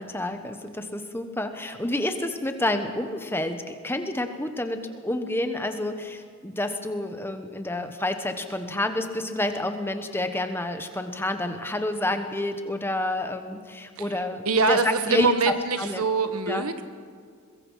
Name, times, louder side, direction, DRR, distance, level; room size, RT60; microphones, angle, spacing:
voice 1, 0.0-16.0 16.5-16.6, left 1 dB, 10° left, 7 dB, 1.2 m, -29 dB
voice 2, 14.4-16.8, right 4 dB, 85° right, 10 dB, 1.4 m, -24 dB
22.0 x 22.0 x 5.7 m, 2.1 s
head